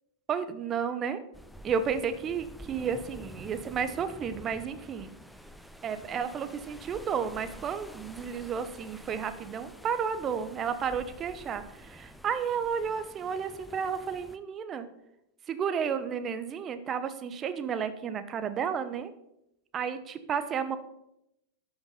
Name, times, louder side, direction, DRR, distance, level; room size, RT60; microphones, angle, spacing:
voice 1, 0.3-1.2 1.6-5.1 5.8-14.9 15.5-19.1 19.7-20.8, right 7 dB, 25° right, 11 dB, 0.9 m, -32 dB
sound 1, 1.3-14.4, equal, ahead, 0.6 m, -49 dB
12.0 x 6.1 x 5.4 m, 0.85 s
figure-of-eight pair, 90°, 0 cm